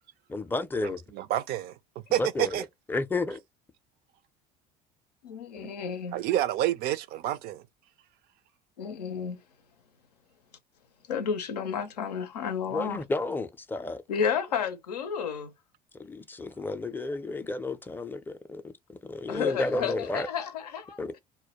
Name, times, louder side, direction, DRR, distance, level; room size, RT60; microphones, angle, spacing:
voice 1, 0.3-1.0 2.2-3.4 5.6-5.7 12.7-14.0 16.0-20.3 21.0-21.2, left 2 dB, 10° left, 0.4 m, -32 dB
voice 2, 0.8-1.7 2.1-2.6 5.6-5.7 6.1-7.6, right 13 dB, 50° right, 0.4 m, -29 dB
voice 3, 5.2-6.2 8.8-9.4 11.1-13.0 14.1-15.5 19.3-21.0, left 7 dB, 90° left, 0.5 m, -31 dB
2.2 x 2.1 x 2.7 m
hypercardioid pair, 70°, 20 cm